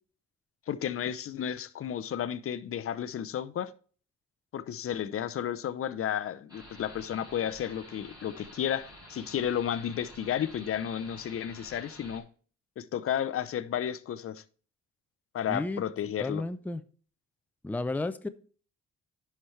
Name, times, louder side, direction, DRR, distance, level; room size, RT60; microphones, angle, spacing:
voice 1, 0.7-3.7 4.5-12.3 12.8-14.4 15.3-16.4, left 9 dB, 45° left, 0.6 m, -32 dB
sound 1, 6.5-12.2, equal, 15° right, 4.3 m, -50 dB
voice 2, 15.5-15.8 16.2-16.8 17.6-18.3, left 2 dB, 5° left, 0.5 m, -32 dB
10.0 x 5.9 x 3.2 m
cardioid pair, 90°, 30 cm